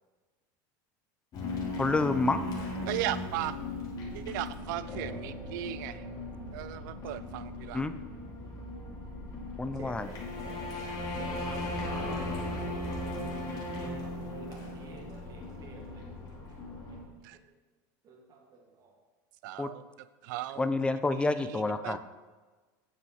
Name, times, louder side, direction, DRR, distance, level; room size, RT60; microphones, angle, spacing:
sound 1, 1.3-17.0, left 2 dB, 40° left, 2.4 m, -37 dB
voice 1, 1.8-2.5 7.7-7.9 9.6-10.1 19.6-19.7 20.6-22.0, left 3 dB, 10° left, 11 dB, 0.5 m, -28 dB
voice 2, 2.9-3.5 4.1-6.1 6.5-7.9 17.2-17.4 19.4-19.8 20.2-20.7 21.1-22.0, right 14 dB, 75° right, 14 dB, 0.4 m, -37 dB
voice 3, 9.7-13.1 13.5-16.0 16.7-17.4 18.0-18.9, right 3 dB, 40° right, 1 dB, 1.7 m, -51 dB
8.2 x 7.4 x 4.2 m, 1.3 s
supercardioid pair, 125°, 10 cm